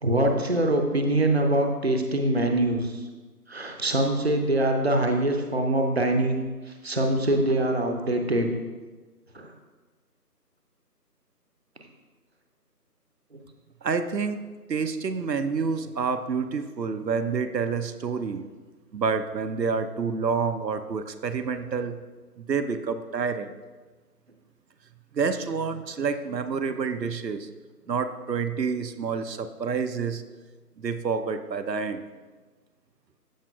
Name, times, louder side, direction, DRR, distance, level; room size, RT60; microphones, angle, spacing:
voice 1, 0.0-3.0 3.5-6.4 6.8-8.5 9.3-9.5 13.3-13.4, right 1 dB, 40° right, 3 dB, 0.6 m, -24 dB
voice 2, 13.8-14.4 14.7-18.5 18.9-22.0 22.4-23.5 25.1-27.5 27.9-30.2 30.8-32.0, right 5 dB, 90° right, 9 dB, 0.7 m, -28 dB
14.0 x 4.9 x 2.3 m, 1.3 s
figure-of-eight pair, 165°, 48 cm